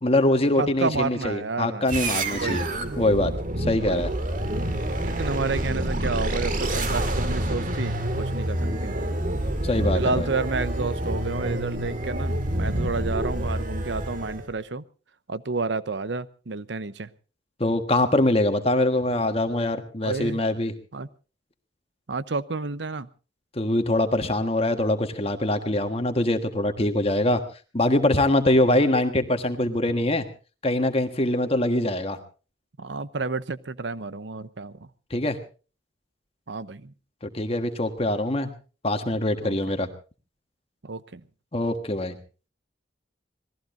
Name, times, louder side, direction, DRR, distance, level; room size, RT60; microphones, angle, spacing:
voice 1, 0.0-2.6 3.0-3.3 3.6-4.1 9.6-10.3 17.6-20.7 23.5-27.4 27.7-30.3 30.6-32.2 35.1-35.4 37.3-38.5 38.8-39.9 41.5-42.1, left 1 dB, 30° left, 7 dB, 1.4 m, -23 dB
voice 2, 0.6-1.9 2.3-2.6 3.8-4.0 5.0-9.0 9.9-14.8 15.3-17.1 20.0-20.4 20.9-21.1 22.1-23.1 32.8-34.9 36.5-36.9 39.4-39.6 40.8-41.2, right 3 dB, 70° right, 16 dB, 0.8 m, -30 dB
sound 1, 1.9-14.5, right 1 dB, 45° right, 2.0 m, -28 dB
26.5 x 19.0 x 2.6 m, 0.36 s
head